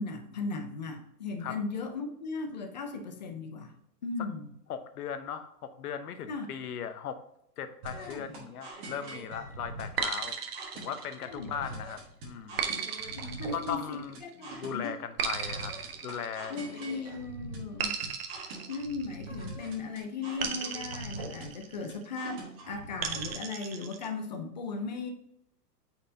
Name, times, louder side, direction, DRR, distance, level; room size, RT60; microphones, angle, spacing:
voice 1, 0.0-3.7 4.0-4.5 6.3-6.5 7.9-8.5 11.2-11.7 12.7-12.8 13.1-14.9 16.5-17.9 18.7-25.1, left 4 dB, 30° left, 5 dB, 0.5 m, -37 dB
voice 2, 4.7-7.2 7.6-10.4 10.7-12.8 13.0-13.1 13.5-15.7 16.0-16.6, left 8 dB, 65° left, 9 dB, 0.9 m, -38 dB
sound 1, 7.8-23.3, right 2 dB, 20° right, 1.1 m, -44 dB
sound 2, 10.0-11.6 12.6-14.2 15.2-16.9 17.8-19.5 20.4-21.9 23.0-24.1, right 7 dB, 40° right, 0.6 m, -36 dB
8.4 x 4.5 x 2.7 m, 0.76 s
supercardioid pair, 175°, 49 cm